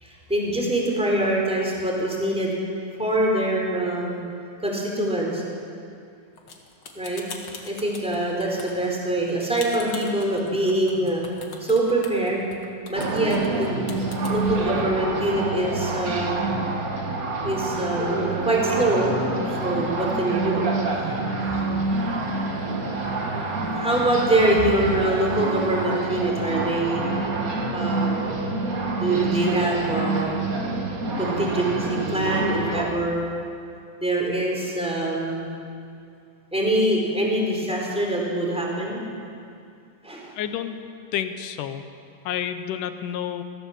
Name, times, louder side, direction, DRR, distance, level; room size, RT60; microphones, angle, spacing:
voice 1, 0.0-2.5 3.0-4.2 4.6-5.4 6.9-7.2 7.6-12.5 12.9-13.8 14.3-16.5 17.4-19.2 19.5-20.7 20.9-21.1 21.4-21.6 23.7-27.1 27.7-28.2 29.0-30.5 31.2-33.3 34.0-35.5 36.5-39.0 40.0-40.4, right 1 dB, ahead, -2 dB, 3.9 m, -24 dB
sound 1, 6.4-14.3, left 4 dB, 45° left, 2.3 m, -41 dB
sound 2, 12.9-32.8, right 3 dB, 45° right, 1.2 m, -27 dB
voice 2, 40.4-40.8 41.1-41.8 42.3-43.4, left 10 dB, 70° left, 9 dB, 2.3 m, -29 dB
23.5 x 16.5 x 7.4 m, 2.4 s
omnidirectional pair, 4.1 m